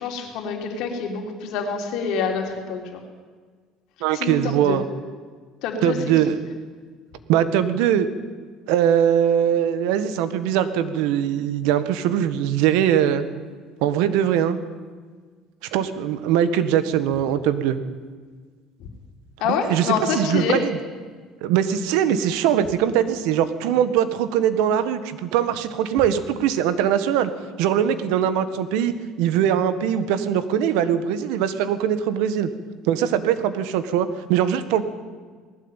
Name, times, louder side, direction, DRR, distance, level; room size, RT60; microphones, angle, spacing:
voice 1, 0.0-3.0 4.1-4.8 5.6-6.0 19.4-20.6, left 6 dB, 70° left, 3 dB, 3.6 m, -26 dB
voice 2, 4.0-4.8 5.8-6.4 7.3-8.1 8.7-13.2 13.8-14.6 15.7-17.8 19.4-20.8 21.4-27.3 27.6-32.5 32.8-34.8, right 9 dB, 90° right, 12 dB, 1.6 m, -21 dB
19.5 x 16.5 x 9.1 m, 1.5 s
cardioid pair, 140°, 0 cm